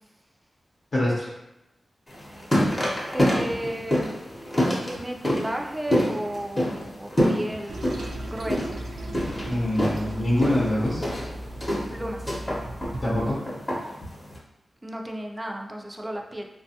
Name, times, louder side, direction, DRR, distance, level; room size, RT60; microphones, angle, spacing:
voice 1, 0.9-1.3 9.5-11.0 13.0-13.4, left 1 dB, 65° left, -6 dB, 0.7 m, -24 dB
sound 1, 2.1-14.4, equal, 25° left, 0.8 m, -27 dB
voice 2, 3.1-4.2 4.8-8.8 11.9-12.3 14.8-16.4, right 1 dB, 15° right, 2 dB, 0.4 m, -33 dB
Toilet flush, 7.7-13.3, right 1 dB, 85° right, 0.4 m, -36 dB
3.2 x 2.2 x 2.7 m, 0.95 s
wide cardioid pair, 75°, 0 cm